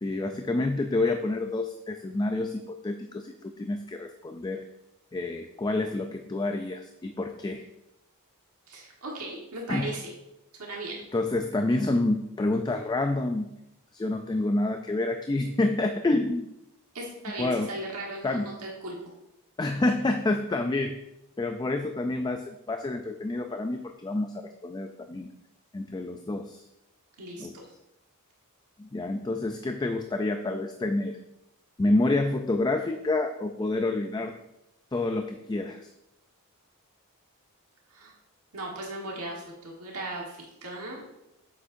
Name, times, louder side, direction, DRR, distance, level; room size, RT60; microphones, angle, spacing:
voice 1, 0.0-4.6 5.1-7.6 9.7-9.9 11.1-13.5 13.9-16.5 17.4-17.7 18.2-18.4 19.6-21.0 21.4-25.3 25.7-26.6 27.4-27.5 28.8-31.2 31.8-34.3 34.9-35.9, left 2 dB, 20° left, 6 dB, 0.3 m, -28 dB
voice 2, 8.7-10.1 10.6-11.0 16.9-18.9 27.2-27.6 37.9-38.1 38.5-41.0, right 2 dB, 80° right, -1 dB, 1.5 m, -37 dB
8.1 x 7.5 x 2.6 m, 0.87 s
head